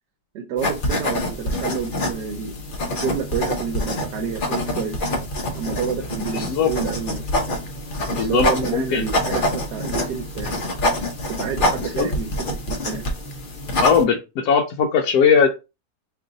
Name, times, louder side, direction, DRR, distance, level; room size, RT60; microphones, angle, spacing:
voice 1, 0.3-2.7 3.0-5.0 5.5-7.2 8.1-10.6 11.3-13.1, right 6 dB, 80° right, 1.2 m, -29 dB
sound 1, 0.6-14.0, left 1 dB, 50° left, 0.6 m, -26 dB
voice 2, 6.3-6.7 8.2-9.1 11.9-12.1 13.8-15.7, left 6 dB, 70° left, 1.0 m, -19 dB
3.0 x 2.5 x 3.8 m
omnidirectional pair, 1.8 m